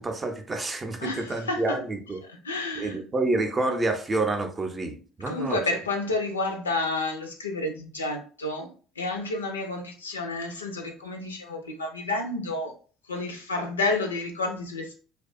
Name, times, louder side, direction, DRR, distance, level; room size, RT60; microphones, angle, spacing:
voice 1, 0.0-2.2 2.8-5.6, right 2 dB, 30° right, 0.5 m, -28 dB
voice 2, 1.0-1.8 2.3-3.0 5.3-8.7 9.0-12.7 13.1-14.9, left 2 dB, 90° left, 0.4 m, -30 dB
2.6 x 2.3 x 2.4 m
hypercardioid pair, 55°, 0 cm